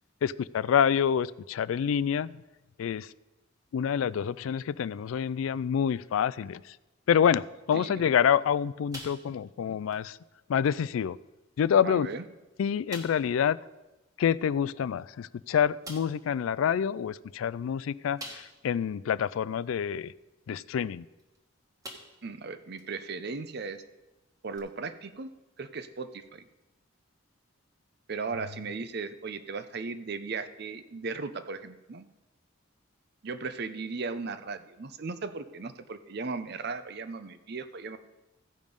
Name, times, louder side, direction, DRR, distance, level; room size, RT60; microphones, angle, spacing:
voice 1, 0.2-2.3 2.8-3.1 3.7-6.7 7.1-10.2 10.5-11.2 11.6-12.1 12.6-13.6 14.2-20.1 20.5-21.0, left 8 dB, 80° left, 18 dB, 0.3 m, -27 dB
sound 1, 8.9-9.6 9.9-10.1 10.6-10.8 11.6-11.7 12.1-12.2 12.9-13.3 15.0-15.1 15.8-16.2 18.2-18.8 19.3-19.4 21.2-21.4 21.8-22.3 22.8-22.9 24.5-24.6, right 1 dB, 15° right, 1.3 m, -44 dB
voice 2, 11.8-12.2 22.2-23.8 24.4-25.3 25.6-26.4 28.1-32.1 33.2-38.0, right 4 dB, 50° right, 11 dB, 0.6 m, -37 dB
15.0 x 5.2 x 5.3 m, 1.0 s
head